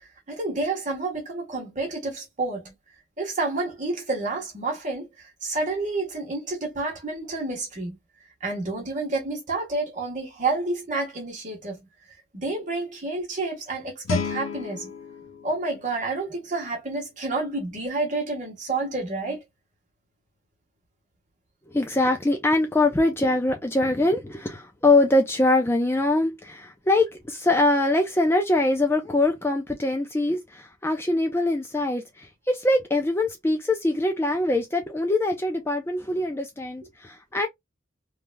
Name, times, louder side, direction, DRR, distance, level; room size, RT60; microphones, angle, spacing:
voice 1, 0.0-2.7 3.2-8.0 8.4-11.8 12.3-14.9 15.4-19.4, right 3 dB, 40° right, 1.2 m, -29 dB
Guitar, 14.0-16.8, left 5 dB, 75° left, 0.6 m, -33 dB
voice 2, 21.7-37.5, left 2 dB, 10° left, 0.4 m, -23 dB
3.2 x 2.8 x 2.2 m
head